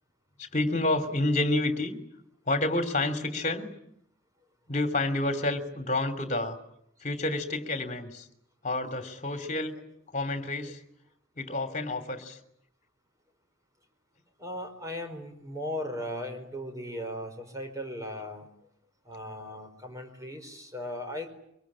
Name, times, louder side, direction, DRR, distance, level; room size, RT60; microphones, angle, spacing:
voice 1, 0.5-2.0 2.5-3.7 4.7-6.6 7.0-8.2 8.6-9.8 10.1-10.8 11.4-12.4, left 2 dB, 35° left, 7 dB, 3.1 m, -29 dB
voice 2, 14.4-18.5 19.0-21.3, left 1 dB, 15° right, 5 dB, 4.8 m, -37 dB
24.5 x 23.5 x 10.0 m, 0.73 s
head